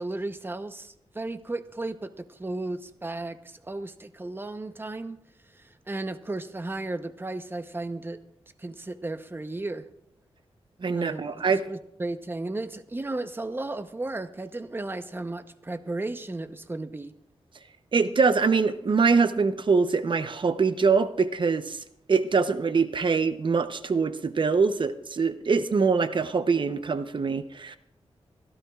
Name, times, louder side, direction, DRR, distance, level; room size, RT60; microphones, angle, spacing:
voice 1, 0.0-5.2 5.9-8.2 8.6-9.9 10.9-17.1, right 2 dB, 20° right, 10 dB, 0.8 m, -34 dB
voice 2, 10.8-11.6 17.9-21.8 22.1-27.8, right 5 dB, 50° right, 10 dB, 0.8 m, -24 dB
25.0 x 12.0 x 2.4 m, 0.79 s
wide cardioid pair, 95°, 11 cm